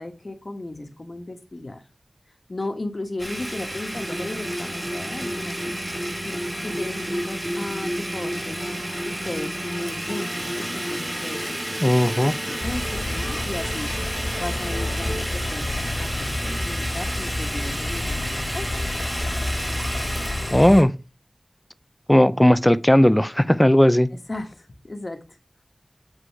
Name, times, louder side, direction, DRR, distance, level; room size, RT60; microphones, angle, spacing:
voice 1, 0.0-1.8 2.5-5.7 6.2-6.4 6.6-8.6 9.0-13.9 14.4-18.8 24.3-25.2, left 2 dB, 55° left, 1.4 m, -35 dB
Domestic sounds home sounds, 3.2-20.8, equal, 15° right, 2.4 m, -32 dB
sound 1, 3.9-15.3, equal, 55° right, 4.2 m, -34 dB
voice 2, 11.8-12.3 20.5-20.9 22.1-24.1, equal, 10° left, 0.5 m, -16 dB
sound 2, 12.6-20.8, left 2 dB, 70° left, 1.9 m, -30 dB
8.4 x 4.8 x 4.6 m
wide cardioid pair, 65°, 0 cm